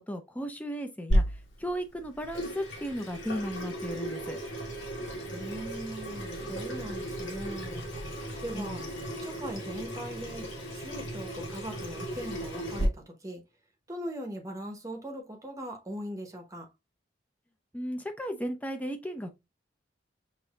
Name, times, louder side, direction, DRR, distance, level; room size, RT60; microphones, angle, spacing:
voice 1, 0.0-4.4 8.5-8.8 17.7-19.3, equal, 10° left, 0.6 m, -35 dB
Water tap faucet / Sink (filling or washing), 1.1-12.8, equal, 80° left, 1.6 m, -34 dB
voice 2, 5.3-7.8 8.4-8.8 9.2-13.4 13.9-16.7, equal, 15° right, 0.9 m, -40 dB
6.1 x 2.7 x 2.3 m
head